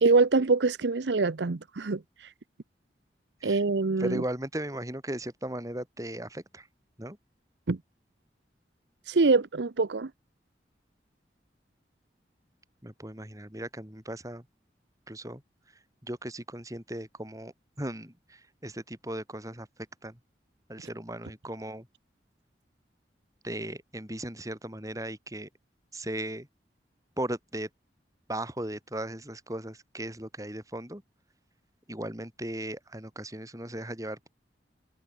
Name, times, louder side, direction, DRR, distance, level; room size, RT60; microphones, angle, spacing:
voice 1, 0.0-2.0 3.4-4.2 7.7-7.8 9.1-10.1, right 3 dB, 85° right, 0.7 m, -24 dB
voice 2, 4.0-6.7 7.0-7.2 12.8-14.4 15.1-15.4 16.0-19.7 20.0-20.2 20.7-21.9 23.4-25.5 25.9-26.5 27.2-27.7 28.3-31.0 31.9-34.3, right 1 dB, 20° right, 5.2 m, -37 dB
head